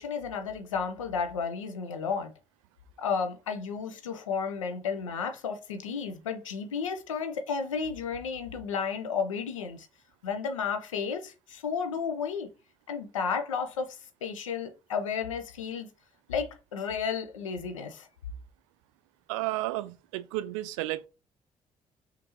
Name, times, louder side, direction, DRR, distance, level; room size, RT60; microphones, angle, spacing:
voice 1, 0.0-2.3 3.0-9.9 10.2-12.5 12.9-15.9 16.3-18.1, left 6 dB, 85° left, 0.5 m, -32 dB
voice 2, 19.3-21.1, right 17 dB, 70° right, 0.4 m, -32 dB
5.1 x 2.6 x 2.9 m
figure-of-eight pair, 40°, 16 cm